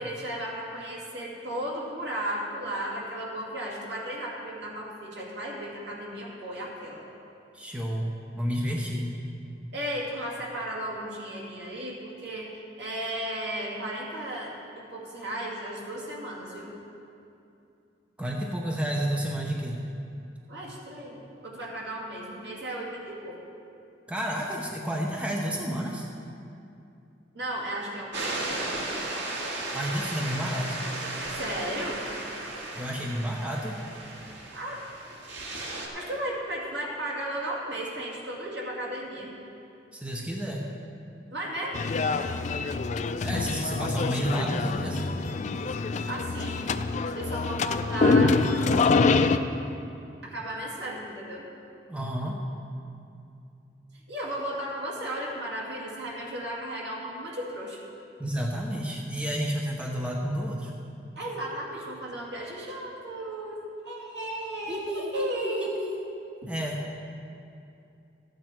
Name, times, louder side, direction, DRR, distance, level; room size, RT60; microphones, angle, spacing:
voice 1, 0.0-7.0 9.7-16.7 20.5-23.4 27.3-29.2 31.3-32.0 34.5-34.8 35.9-39.4 41.3-41.8 46.1-46.6 47.2-49.0 50.2-51.5 53.9-57.8 61.2-63.5 63.8-65.9 66.4-66.5, right 1 dB, 70° right, -4 dB, 2.3 m, -35 dB
voice 2, 7.5-8.1 8.4-9.1 18.2-19.8 24.1-26.1 29.7-30.8 32.7-33.8 39.9-40.6 43.2-45.1 51.9-52.4 58.2-60.7 64.7-65.9 66.5-66.8, equal, 5° right, -1 dB, 0.8 m, -30 dB
sound 1, 28.1-35.9, right 2 dB, 85° right, 1.7 m, -35 dB
sound 2, 41.7-49.4, left 4 dB, 40° left, 0.4 m, -25 dB
13.5 x 8.5 x 4.5 m, 2.6 s
head